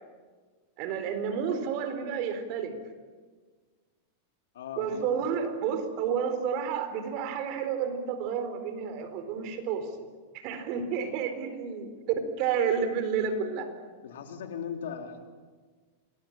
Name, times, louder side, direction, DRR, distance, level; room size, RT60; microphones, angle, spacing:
voice 1, 0.8-2.8 4.8-10.1 10.3-13.7, right 7 dB, 45° right, 8 dB, 4.0 m, -30 dB
voice 2, 4.5-5.3 14.0-15.2, left 7 dB, 85° left, 4 dB, 3.8 m, -38 dB
27.0 x 20.0 x 8.8 m, 1.5 s
supercardioid pair, 155°, 0 cm